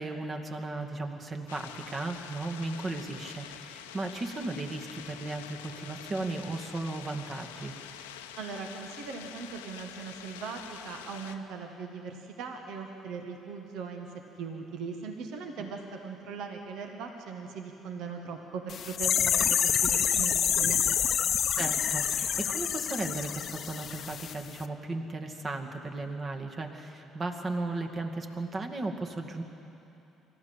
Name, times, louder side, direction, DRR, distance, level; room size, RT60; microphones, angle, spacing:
voice 1, 0.0-7.7 21.6-29.4, right 2 dB, 35° right, 3 dB, 2.2 m, -36 dB
sound 1, 1.5-11.4, left 10 dB, 80° left, 0.8 m, -46 dB
voice 2, 8.3-20.8, right 5 dB, 65° right, 4 dB, 1.7 m, -39 dB
sound 2, 18.7-24.3 24.6-24.7, left 8 dB, 50° left, 0.8 m, -27 dB
25.0 x 13.5 x 8.8 m, 2.9 s
figure-of-eight pair, 50°, 0 cm